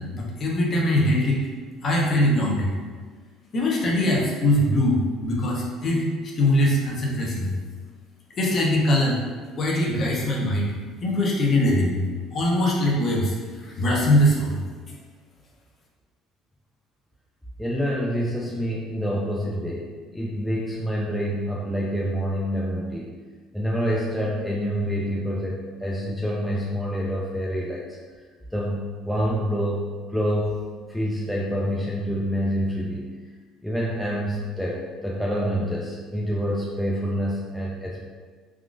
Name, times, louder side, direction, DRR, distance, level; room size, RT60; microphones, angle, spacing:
voice 1, 0.0-1.4 1.8-2.7 3.5-6.0 6.4-7.5 8.4-9.2 9.6-10.7 11.0-12.0 12.3-13.4 13.6-14.6, left 1 dB, 40° left, -2 dB, 0.7 m, -22 dB
voice 2, 17.6-23.1 23.5-28.0 28.5-33.1 33.6-38.0, equal, ahead, -5 dB, 0.3 m, -27 dB
3.5 x 2.4 x 2.4 m, 1.5 s
cardioid pair, 135°, 0 cm